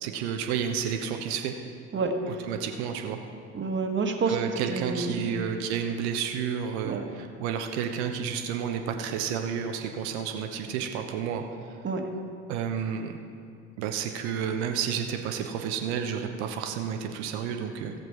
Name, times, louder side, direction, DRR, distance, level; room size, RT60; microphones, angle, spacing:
voice 1, 0.0-1.5 2.3-3.2 4.3-11.4 12.5-13.1 13.8-17.9, right 7 dB, 70° right, 5 dB, 0.9 m, -31 dB
voice 2, 1.9-2.4 3.5-5.3 6.8-7.0 11.8-12.1, right 4 dB, 35° right, 3 dB, 1.5 m, -29 dB
14.5 x 7.6 x 4.8 m, 2.4 s
hypercardioid pair, 55°, 34 cm